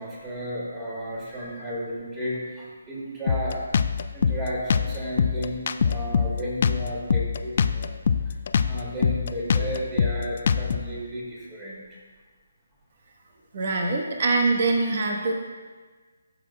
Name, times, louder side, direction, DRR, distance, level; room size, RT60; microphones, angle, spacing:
voice 1, 0.0-8.4 8.6-12.1, equal, 15° right, -6 dB, 2.3 m, -33 dB
Drum kit, 3.3-10.9, left 6 dB, 50° left, 0.4 m, -24 dB
voice 2, 13.5-15.3, right 3 dB, 50° right, 2 dB, 1.2 m, -23 dB
12.0 x 6.8 x 2.3 m, 1.4 s
figure-of-eight pair, 150°, 0 cm